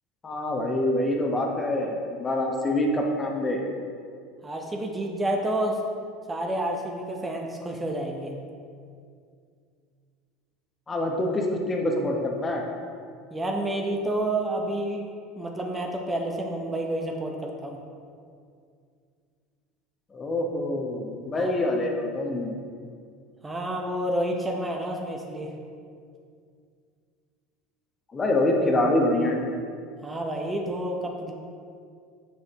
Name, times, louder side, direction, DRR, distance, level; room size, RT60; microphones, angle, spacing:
voice 1, 0.2-3.7 10.9-12.6 20.1-22.6 28.1-29.5, left 1 dB, 25° left, 1 dB, 1.1 m, -25 dB
voice 2, 4.4-5.8 6.3-8.4 13.3-15.1 15.4-17.8 21.4-21.5 23.4-25.5 30.0-31.3, right 1 dB, 15° right, 1 dB, 0.8 m, -29 dB
6.8 x 6.5 x 3.0 m, 2.3 s
hypercardioid pair, 70°, 0 cm